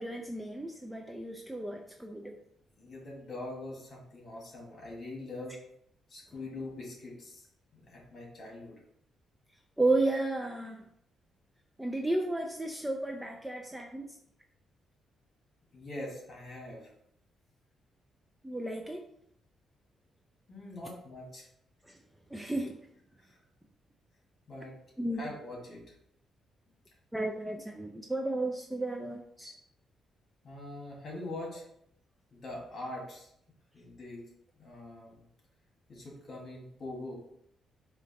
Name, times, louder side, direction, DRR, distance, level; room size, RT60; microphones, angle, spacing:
voice 1, 0.0-2.4 9.8-10.9 11.8-14.2 18.4-19.0 21.8-22.0 22.3-22.8 25.0-25.3 27.1-29.6, right 2 dB, 5° right, 2 dB, 0.3 m, -33 dB
voice 2, 2.8-5.6 6.1-7.4 7.9-8.7 15.7-16.9 20.5-21.5 23.2-23.4 24.5-24.8 25.2-25.9 30.4-31.6 32.3-33.3 33.7-34.3 34.6-35.2 35.9-37.2, left 2 dB, 40° left, -2 dB, 1.5 m, -43 dB
4.5 x 2.5 x 4.0 m, 0.71 s
cardioid pair, 140°, 0 cm